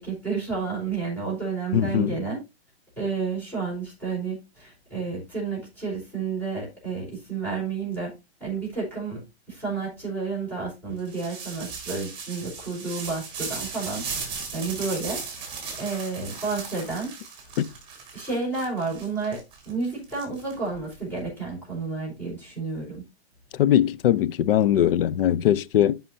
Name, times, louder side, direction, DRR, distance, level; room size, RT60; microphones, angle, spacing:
voice 1, 0.0-2.4 3.0-8.1 8.4-15.2 15.8-17.1 18.1-19.4 19.6-23.0, right 4 dB, 5° left, 4.7 m, -31 dB
voice 2, 1.7-2.2 17.6-17.7 23.5-25.9, left 11 dB, 60° left, 0.5 m, -21 dB
sound 1, 11.0-20.9, right 5 dB, 15° right, 3.1 m, -37 dB
12.5 x 5.6 x 2.7 m
hypercardioid pair, 160°, 32 cm